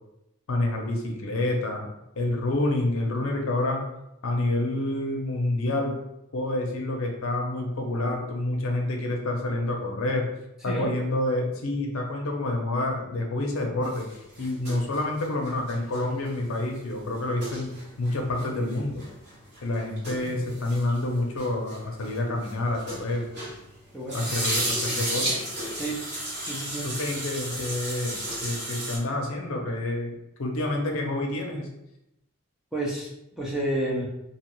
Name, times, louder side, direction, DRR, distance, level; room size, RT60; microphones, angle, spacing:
voice 1, 0.5-1.8 2.2-3.8 4.2-6.0 6.3-10.3 10.6-14.1 14.4-19.0 19.6-23.3 24.1-25.4 26.8-31.7, left 2 dB, 70° left, 1 dB, 0.6 m, -28 dB
sound 1, 13.8-23.7 24.0-29.0, right 1 dB, 45° right, 1.4 m, -34 dB
voice 2, 20.1-20.5 23.9-24.3 25.8-26.0 26.4-26.9 32.7-33.1 33.4-34.1, right 1 dB, ahead, -5 dB, 0.4 m, -30 dB
2.8 x 2.4 x 3.0 m, 0.86 s
head